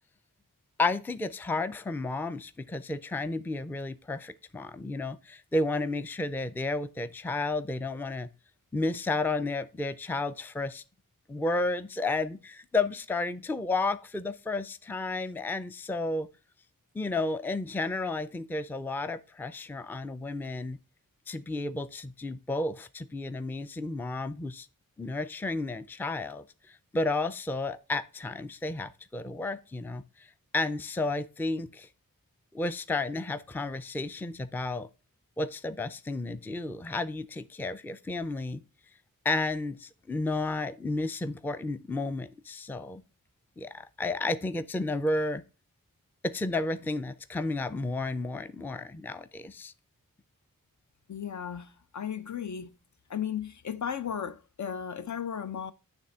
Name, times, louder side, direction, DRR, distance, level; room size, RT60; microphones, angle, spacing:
voice 1, 0.8-8.3 8.7-10.8 11.3-16.3 16.9-20.8 21.3-24.7 25.0-31.9 32.5-34.9 35.4-38.6 39.2-43.0 43.6-45.4 46.2-49.7, left 2 dB, 5° left, 0.4 m, -32 dB
voice 2, 51.1-52.7 53.1-55.7, left 8 dB, 55° left, 0.6 m, -35 dB
9.0 x 3.5 x 5.4 m
wide cardioid pair, 90°, 35 cm